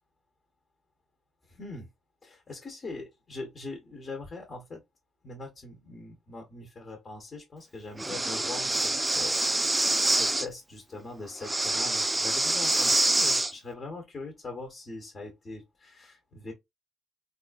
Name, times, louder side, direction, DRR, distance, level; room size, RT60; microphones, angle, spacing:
voice 1, 1.4-1.9 2.2-4.8 5.2-16.5, left 3 dB, 35° left, 1.1 m, -42 dB
Breathing, 8.0-10.5 11.4-13.5, right 2 dB, 15° right, 0.4 m, -26 dB
3.6 x 2.5 x 2.3 m
cardioid pair, 90°, 0 cm